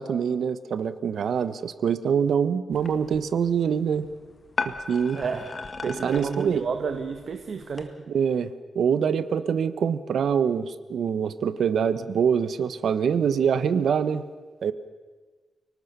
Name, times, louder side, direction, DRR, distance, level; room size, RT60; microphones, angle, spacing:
voice 1, 0.0-4.1 4.6-5.2 5.9-6.6 8.1-14.2 14.6-14.7, right 7 dB, 85° right, 13 dB, 1.3 m, -25 dB
sound 1, 2.7-7.9, left 4 dB, 40° left, 1.8 m, -37 dB
voice 2, 5.1-5.5 5.8-8.1, right 5 dB, 60° right, 7 dB, 1.5 m, -31 dB
30.0 x 19.0 x 6.9 m, 1.3 s
wide cardioid pair, 130°, 0 cm